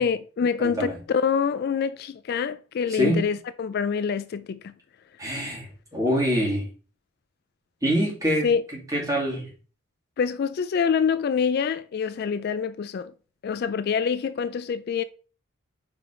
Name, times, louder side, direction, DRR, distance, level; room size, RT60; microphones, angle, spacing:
voice 1, 0.0-4.7 8.4-8.6 10.2-13.1 13.4-15.0, left 6 dB, 50° left, 0.3 m, -26 dB
voice 2, 0.6-0.9 3.0-3.3 5.2-6.7 7.8-8.5 8.9-9.5, equal, 15° right, 2.6 m, -25 dB
4.9 x 4.8 x 5.0 m
head